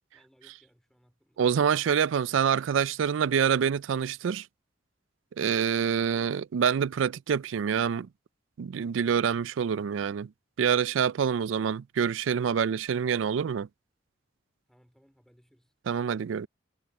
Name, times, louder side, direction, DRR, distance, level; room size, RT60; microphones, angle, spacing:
voice 1, 0.0-1.4 14.7-15.7, equal, ahead, 4.4 m, -63 dB
voice 2, 1.4-4.4 5.4-8.1 8.6-10.3 10.6-13.7 15.9-16.5, right 7 dB, 80° right, 0.4 m, -26 dB
head